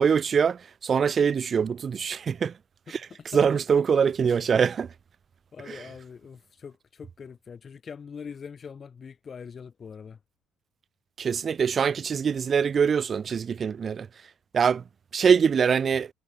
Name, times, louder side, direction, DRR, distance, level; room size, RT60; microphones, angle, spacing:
voice 1, 0.0-2.5 2.9-3.1 3.3-4.9 5.7-5.8 11.2-14.1 14.5-14.8 15.1-16.1, right 6 dB, 30° right, 2.1 m, -23 dB
voice 2, 5.5-10.2, left 6 dB, 25° left, 3.8 m, -42 dB
cardioid pair, 180°, 0 cm